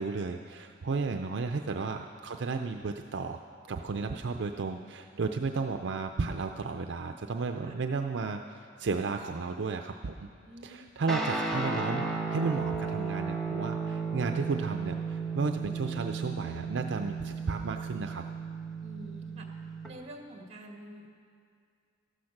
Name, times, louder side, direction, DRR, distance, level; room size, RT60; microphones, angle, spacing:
voice 1, 0.0-3.4 3.7-10.3 10.6-18.2, right 4 dB, 65° right, 5 dB, 0.5 m, -33 dB
voice 2, 7.6-7.9 10.4-10.9 18.8-19.5 19.9-21.1, right 1 dB, 35° right, 2 dB, 1.8 m, -47 dB
Guitar, 11.1-19.9, right 4 dB, ahead, 1.4 m, -34 dB
14.0 x 13.0 x 5.9 m, 2.3 s
head